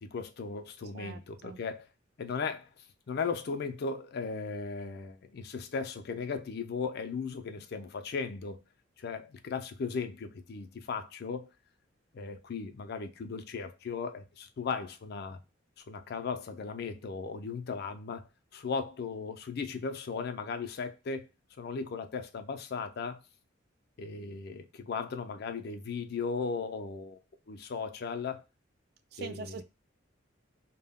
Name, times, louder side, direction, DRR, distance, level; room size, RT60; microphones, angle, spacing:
voice 1, 0.0-1.9 2.2-2.7 3.1-8.6 9.0-11.5 12.1-15.4 15.8-18.3 18.5-21.3 21.6-23.2 24.0-27.2 27.5-28.4 29.2-29.6, left 5 dB, 55° left, 0.4 m, -37 dB
voice 2, 0.9-1.6 29.1-29.6, right 4 dB, 55° right, 0.3 m, -43 dB
2.1 x 2.1 x 3.5 m
head